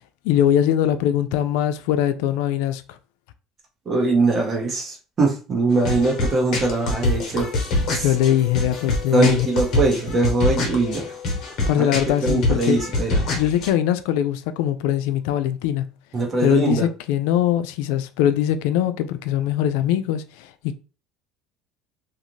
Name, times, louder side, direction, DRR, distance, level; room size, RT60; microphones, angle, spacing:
voice 1, 0.2-2.8 8.0-9.5 11.7-12.8 13.3-15.9 16.4-20.5, left 11 dB, 85° left, 0.3 m, -21 dB
voice 2, 3.9-7.5 7.9-8.1 9.1-11.0 11.6-11.9 12.2-13.2 16.1-16.9, right 3 dB, 30° right, 1.0 m, -22 dB
sound 1, 5.7-13.7, left 2 dB, 55° left, 1.0 m, -25 dB
2.6 x 2.4 x 3.1 m
cardioid pair, 125°, 0 cm